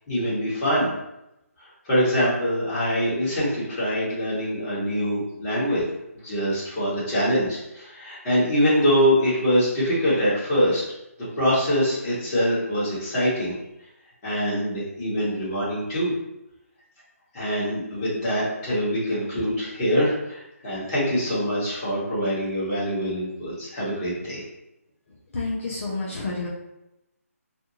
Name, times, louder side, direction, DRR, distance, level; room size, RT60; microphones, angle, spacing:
voice 1, 0.1-0.9 1.6-5.8 6.1-10.8 11.3-13.5 14.2-16.1 17.3-24.4, equal, 20° left, -10 dB, 1.2 m, -24 dB
voice 2, 25.3-26.5, left 3 dB, 55° left, -5 dB, 0.6 m, -29 dB
2.5 x 2.2 x 2.9 m, 0.90 s
hypercardioid pair, 160°, 8 cm